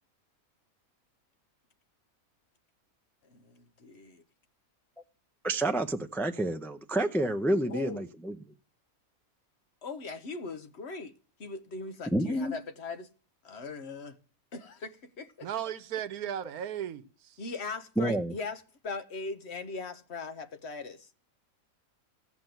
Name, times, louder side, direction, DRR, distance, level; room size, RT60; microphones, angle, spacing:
voice 1, 3.2-4.2 7.7-8.0 9.8-11.1 11.4-13.1 13.4-14.2 14.5-15.5 17.4-21.1, left 4 dB, 50° left, 1.2 m, -40 dB
voice 2, 5.4-8.4 12.1-12.5 18.0-18.3, right 1 dB, 5° left, 0.3 m, -29 dB
voice 3, 15.4-17.4, right 10 dB, 85° right, 1.3 m, -36 dB
15.5 x 6.0 x 9.1 m
omnidirectional pair, 1.5 m